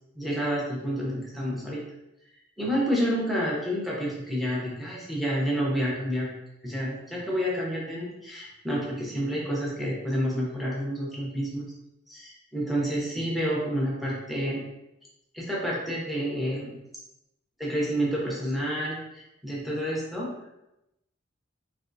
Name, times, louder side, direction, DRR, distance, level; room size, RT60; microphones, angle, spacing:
voice 1, 0.1-1.8 2.6-6.3 6.6-11.7 12.1-14.6 15.3-16.7 17.6-20.3, equal, ahead, -4 dB, 0.8 m, -29 dB
3.3 x 3.2 x 2.6 m, 0.89 s
head